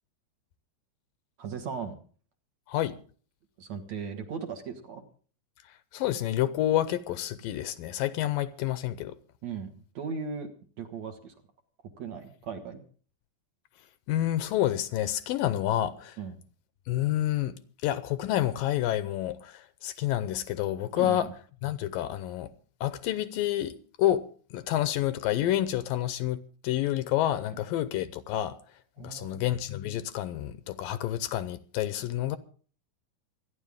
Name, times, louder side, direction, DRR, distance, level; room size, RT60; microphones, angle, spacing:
voice 1, 1.4-2.0 3.6-5.0 9.4-10.5 10.8-11.3 12.0-12.8 16.2-16.3 21.0-21.3 29.0-29.4, right 6 dB, 55° right, 2.5 m, -37 dB
voice 2, 2.7-3.0 5.7-9.2 14.1-16.2 16.9-21.3 21.6-22.5 22.8-28.6 29.0-32.4, left 13 dB, 75° left, 2.4 m, -29 dB
26.0 x 10.5 x 3.6 m
omnidirectional pair, 4.3 m